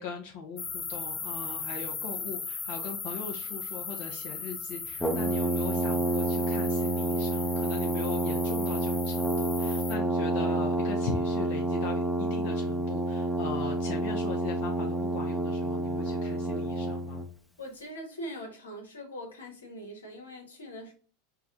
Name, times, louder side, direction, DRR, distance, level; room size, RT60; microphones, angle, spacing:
voice 1, 0.0-17.3, left 5 dB, 60° left, 0.6 m, -40 dB
sound 1, 0.6-9.9, left 5 dB, 30° left, 0.8 m, -38 dB
Brass instrument, 5.0-17.3, right 2 dB, 5° left, 0.6 m, -29 dB
voice 2, 17.6-20.9, equal, 85° left, 1.0 m, -42 dB
4.6 x 2.2 x 2.6 m
hypercardioid pair, 90°, 0 cm